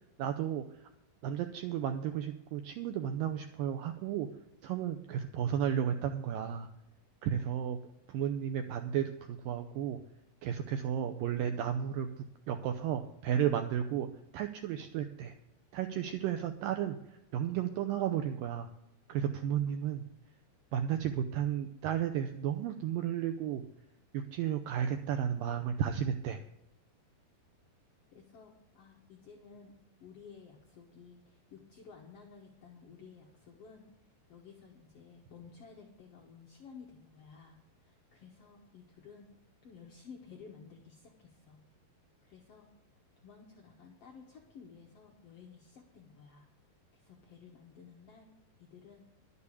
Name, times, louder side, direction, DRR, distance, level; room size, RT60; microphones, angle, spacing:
voice 1, 0.2-0.6 1.2-4.3 4.6-6.7 7.2-7.8 8.1-10.0 10.4-12.1 12.5-14.1 14.3-15.3 15.7-17.0 17.3-18.7 19.1-20.0 20.7-23.6 24.1-26.4, right 9 dB, 80° right, 7 dB, 2.0 m, -33 dB
voice 2, 28.1-29.7 30.0-39.3 39.6-41.6 42.2-42.7 43.2-46.5 46.9-48.3 48.6-49.0, left 6 dB, 65° left, 0 dB, 1.5 m, -54 dB
12.0 x 6.9 x 8.3 m, 0.87 s
omnidirectional pair, 4.7 m